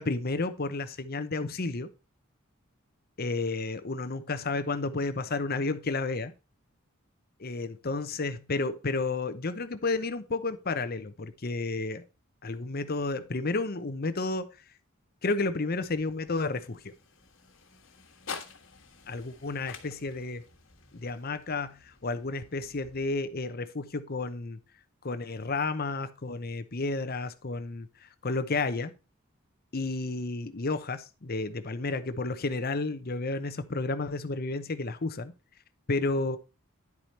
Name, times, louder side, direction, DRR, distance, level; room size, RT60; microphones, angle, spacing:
voice 1, 0.0-1.9 3.2-6.3 7.4-12.0 12.4-14.5 15.2-16.9 19.1-20.4 20.9-24.6 25.0-28.9 29.7-35.3 35.9-36.4, left 3 dB, 45° left, 0.8 m, -31 dB
sound 1, 15.4-23.5, left 5 dB, 65° left, 1.7 m, -49 dB
10.5 x 4.9 x 4.3 m
head